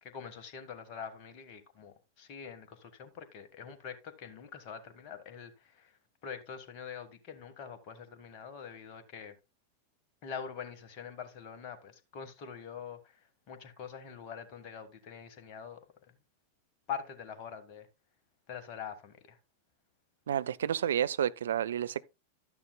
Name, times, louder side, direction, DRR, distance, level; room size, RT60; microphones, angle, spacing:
voice 1, 0.0-9.3 10.2-13.2 13.5-15.8 16.9-17.9 18.5-19.4, left 7 dB, 40° left, 1.4 m, -44 dB
voice 2, 20.3-22.0, right 9 dB, 65° right, 0.4 m, -30 dB
12.0 x 9.4 x 2.2 m
figure-of-eight pair, 90°, 0 cm